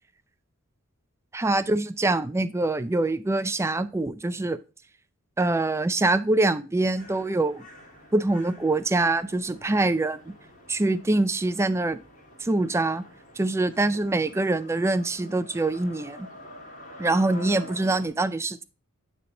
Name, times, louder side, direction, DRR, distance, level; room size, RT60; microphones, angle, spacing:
voice 1, 1.3-4.6 5.4-7.7 8.1-10.3 10.7-12.0 12.4-13.1 13.4-16.3 17.0-18.6, right 2 dB, 15° right, 0.4 m, -24 dB
sound 1, 7.0-18.1, left 1 dB, 40° left, 2.4 m, -47 dB
9.4 x 3.3 x 4.2 m
head